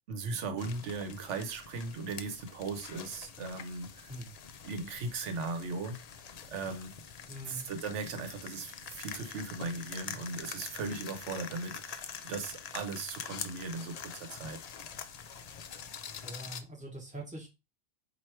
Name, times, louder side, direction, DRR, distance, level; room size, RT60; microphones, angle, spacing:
voice 1, 0.1-4.1 4.6-6.2 6.5-7.0 7.5-14.6, right 3 dB, 80° right, 1.0 m, -38 dB
sound 1, 0.6-16.6, left 7 dB, 70° left, 0.3 m, -45 dB
voice 2, 7.3-7.7 16.2-17.5, right 1 dB, 5° right, 1.1 m, -43 dB
4.4 x 2.5 x 4.4 m
omnidirectional pair, 1.2 m